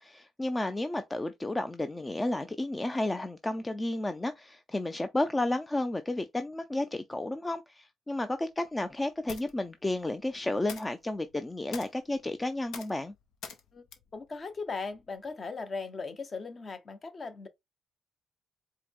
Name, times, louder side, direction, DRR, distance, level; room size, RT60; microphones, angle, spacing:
voice 1, 0.0-13.1, left 2 dB, 15° left, 0.4 m, -32 dB
sound 1, 8.1-15.4, left 6 dB, 80° left, 0.7 m, -49 dB
voice 2, 14.1-17.5, left 4 dB, 40° left, 0.7 m, -38 dB
4.6 x 2.1 x 3.5 m
cardioid pair, 90°, 0 cm